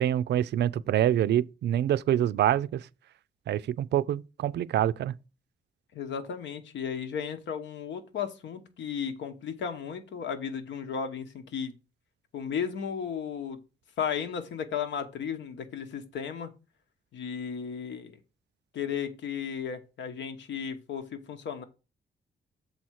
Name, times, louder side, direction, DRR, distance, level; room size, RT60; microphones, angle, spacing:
voice 1, 0.0-2.9 3.5-5.1, right 11 dB, 70° right, 0.4 m, -26 dB
voice 2, 5.9-11.8 12.3-13.6 14.0-16.5 17.1-18.2 18.7-21.6, left 7 dB, 85° left, 1.2 m, -34 dB
7.0 x 4.3 x 6.2 m
wide cardioid pair, 170°, 18 cm